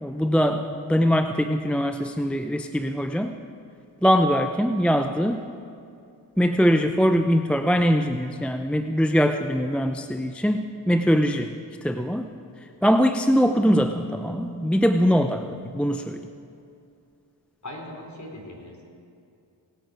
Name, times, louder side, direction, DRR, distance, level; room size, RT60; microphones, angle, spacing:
voice 1, 0.0-3.3 4.0-5.4 6.4-11.5 11.8-12.3 12.8-16.2, equal, ahead, 7 dB, 0.5 m, -22 dB
voice 2, 17.6-18.8, left 1 dB, 35° left, 0 dB, 3.6 m, -39 dB
18.5 x 9.1 x 4.9 m, 2.5 s
supercardioid pair, 45°, 47 cm